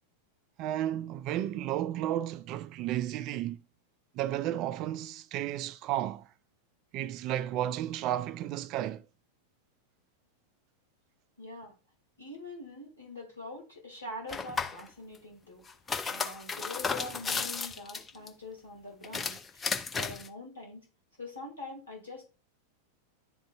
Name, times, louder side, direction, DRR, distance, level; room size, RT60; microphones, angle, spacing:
voice 1, 0.6-3.6 4.1-6.3 6.9-9.0, right 12 dB, 40° right, 0.3 m, -33 dB
voice 2, 11.4-11.7 12.2-15.6 16.1-20.8 21.2-22.3, left 2 dB, 75° left, 2.3 m, -44 dB
sound 1, 14.3-14.8 15.7-18.3 19.0-20.3, left 5 dB, 15° left, 0.5 m, -34 dB
11.0 x 3.8 x 2.3 m
figure-of-eight pair, 90°, 0 cm